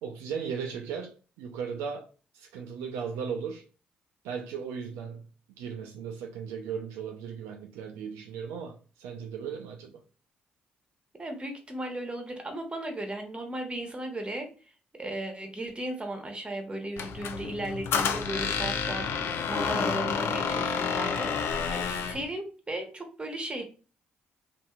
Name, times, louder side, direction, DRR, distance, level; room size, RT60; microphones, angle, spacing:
voice 1, 0.0-2.1 2.3-3.6 4.2-5.2 5.6-10.0, right 6 dB, 75° right, 0.3 m, -37 dB
voice 2, 11.2-14.5 15.0-23.6, right 1 dB, 25° right, 1.0 m, -36 dB
Squeak, 17.0-22.2, left 6 dB, 65° left, 0.4 m, -29 dB
2.7 x 2.5 x 2.3 m
hypercardioid pair, 45°, 5 cm